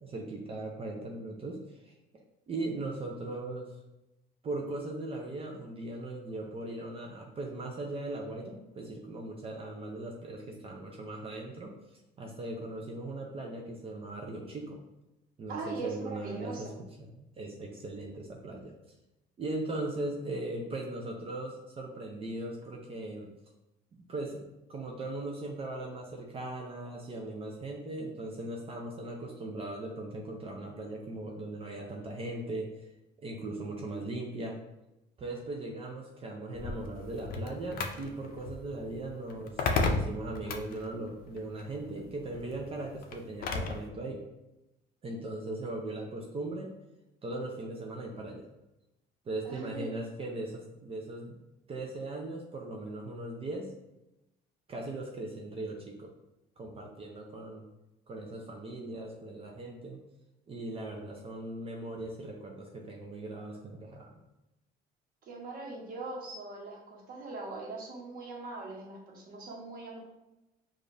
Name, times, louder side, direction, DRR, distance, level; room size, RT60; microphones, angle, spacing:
voice 1, 0.0-1.9 2.5-3.8 4.4-11.7 12.2-14.8 15.4-16.7 17.0-18.7 19.4-23.3 24.1-32.7 33.2-34.6 35.2-44.2 45.0-46.7 47.2-48.5 49.3-51.4 51.7-53.7 54.7-56.1 56.6-57.6 58.1-60.0 60.5-64.2, right 2 dB, 35° right, 0 dB, 0.5 m, -39 dB
voice 2, 15.5-16.7 49.4-49.9 65.2-70.0, right 3 dB, 60° right, -1 dB, 1.1 m, -41 dB
sound 1, 36.5-43.9, left 3 dB, 60° left, 0.5 m, -35 dB
5.0 x 2.5 x 2.6 m, 0.94 s
cardioid pair, 110°, 17 cm